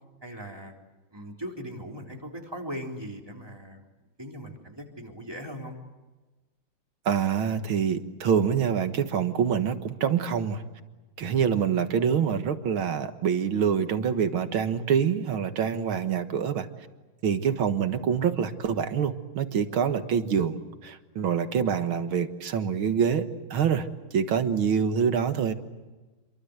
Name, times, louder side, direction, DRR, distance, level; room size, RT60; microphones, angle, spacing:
voice 1, 0.2-0.7 1.1-3.8 4.2-5.8, equal, 10° right, 1 dB, 3.6 m, -39 dB
voice 2, 7.1-10.6 11.2-16.7 17.2-20.6 20.8-23.9 24.1-25.5, right 7 dB, 85° right, 8 dB, 2.3 m, -26 dB
28.0 x 23.5 x 8.1 m, 1.2 s
omnidirectional pair, 2.2 m